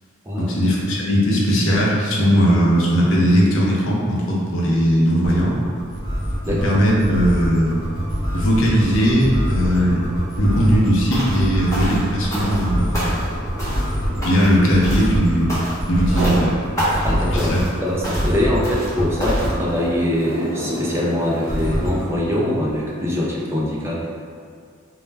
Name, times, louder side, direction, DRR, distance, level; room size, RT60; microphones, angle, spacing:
voice 1, 0.4-5.5 6.6-7.8 8.3-10.0 10.4-13.1 14.2-15.5 15.9-16.6 17.3-17.6, equal, 65° left, -4 dB, 0.5 m, -18 dB
sound 1, 5.2-19.6 21.4-22.0, equal, 40° left, 0.9 m, -24 dB
sound 2, 6.6-6.7 7.1-15.5 16.0-16.5 17.0-22.1, right 1 dB, 90° right, 0.5 m, -33 dB
sound 3, 11.1-11.4 11.7-12.7 12.9-13.3 13.6-13.9 14.2-14.6 14.8-15.1 15.5-15.9 16.2-16.4 16.8-17.1 17.4-17.7 18.0-18.3 18.6-18.9 19.2-19.5, equal, 15° left, 0.6 m, -28 dB
voice 2, 17.0-24.0, left 1 dB, 10° right, -4 dB, 0.3 m, -23 dB
2.2 x 2.1 x 3.2 m, 2.2 s
head